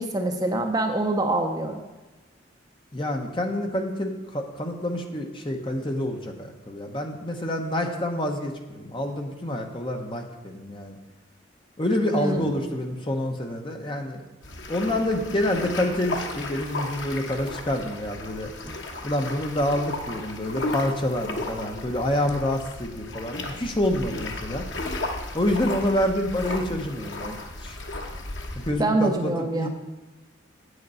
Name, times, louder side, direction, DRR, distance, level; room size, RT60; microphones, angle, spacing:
voice 1, 0.0-1.8 12.1-12.5 28.8-29.7, right 2 dB, 20° right, 4 dB, 0.6 m, -25 dB
voice 2, 2.9-11.0 11.8-14.2 14.7-18.5 19.0-24.7 25.3-27.8 28.5-29.7, left 1 dB, 25° left, 3 dB, 1.0 m, -27 dB
sound 1, 14.4-28.7, left 2 dB, 70° left, 1.2 m, -34 dB
8.2 x 8.0 x 5.6 m, 1.2 s
head